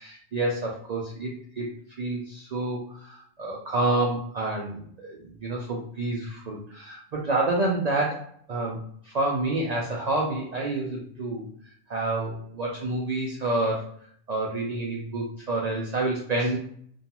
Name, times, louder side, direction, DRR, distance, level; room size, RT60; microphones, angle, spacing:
voice 1, 0.0-1.7 2.0-11.5 11.9-13.8 14.3-16.6, right 2 dB, 80° right, -2 dB, 0.3 m, -28 dB
2.4 x 2.2 x 2.8 m, 0.63 s
omnidirectional pair, 1.3 m